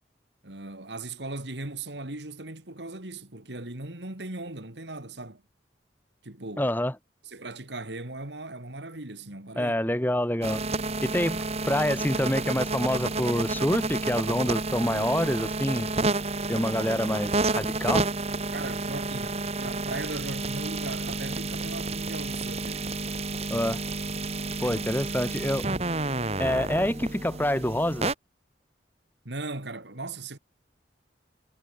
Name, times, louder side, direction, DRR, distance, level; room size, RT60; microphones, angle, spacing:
voice 1, 0.4-5.4 6.2-6.7 7.3-9.7 11.1-11.2 18.5-23.0 24.6-24.8 29.2-30.4, right 2 dB, 80° right, 3.3 m, -38 dB
voice 2, 6.6-6.9 9.6-10.6 11.0-15.9 16.5-18.1 23.5-23.8 24.6-25.7 26.4-28.1, left 1 dB, 10° left, 2.2 m, -27 dB
sound 1, 10.4-28.1, right 3 dB, 35° right, 2.2 m, -30 dB
head